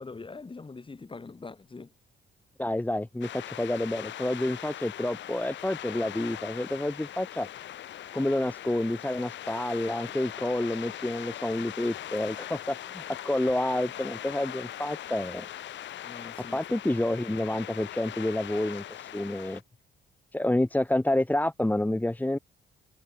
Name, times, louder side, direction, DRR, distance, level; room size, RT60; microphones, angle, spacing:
voice 1, 0.0-1.9 16.0-16.8, left 4 dB, 25° left, 3.6 m, -43 dB
voice 2, 2.6-7.5 8.1-15.4 16.5-19.6 20.3-22.4, left 1 dB, 10° left, 1.7 m, -29 dB
sound 1, 3.2-19.6, left 12 dB, 65° left, 1.0 m, -41 dB
cardioid pair, 90°, 20 cm